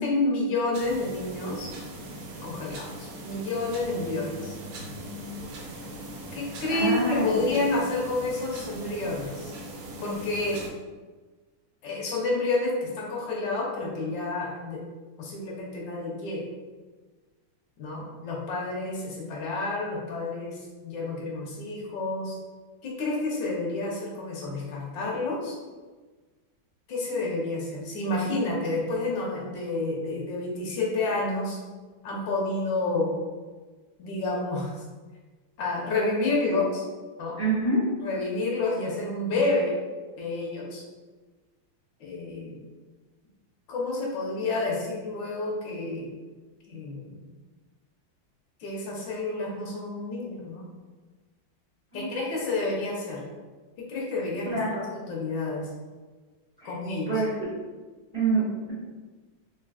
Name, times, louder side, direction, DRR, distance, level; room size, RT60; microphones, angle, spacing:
voice 1, 0.0-1.7 2.4-4.6 6.3-9.5 10.0-10.6 11.8-14.8 15.2-16.5 17.8-22.4 22.8-25.6 26.9-31.6 32.0-33.1 34.0-34.7 35.6-36.8 37.2-37.4 38.0-39.8 40.2-40.8 42.0-42.6 43.7-46.2 46.7-47.3 48.6-50.7 51.9-53.2 53.8-55.7 56.6-57.1, left 2 dB, 65° left, -3 dB, 1.5 m, -29 dB
sound 1, 0.7-10.7, equal, 90° right, 1.5 m, -40 dB
voice 2, 6.7-7.7 28.2-28.4 37.4-37.8 51.9-52.1 54.4-54.8 56.6-56.7 57.1-57.5 58.1-58.7, right 2 dB, 20° right, -14 dB, 1.4 m, -27 dB
3.8 x 3.4 x 2.3 m, 1.3 s
omnidirectional pair, 2.3 m